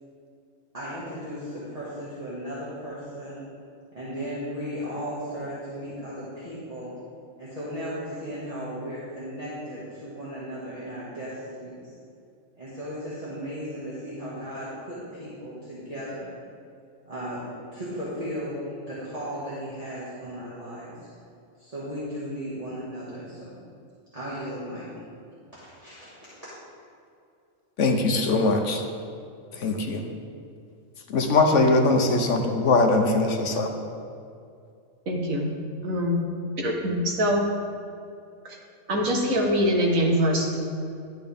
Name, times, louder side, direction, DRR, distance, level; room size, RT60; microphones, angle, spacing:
voice 1, 0.7-3.5 3.9-7.0 7.4-11.8 12.6-16.3 17.1-21.0 21.6-23.6 24.1-24.9 25.5-26.5, equal, 25° right, -10 dB, 2.0 m, -36 dB
voice 2, 27.8-28.8 29.5-30.1 31.1-33.7, left 3 dB, 60° left, 3 dB, 1.1 m, -21 dB
voice 3, 35.0-35.5 35.8-36.2 36.6-37.5 38.4-38.6 38.9-40.6, equal, 70° right, -1 dB, 1.8 m, -24 dB
12.0 x 7.7 x 3.6 m, 2.4 s
omnidirectional pair, 1.5 m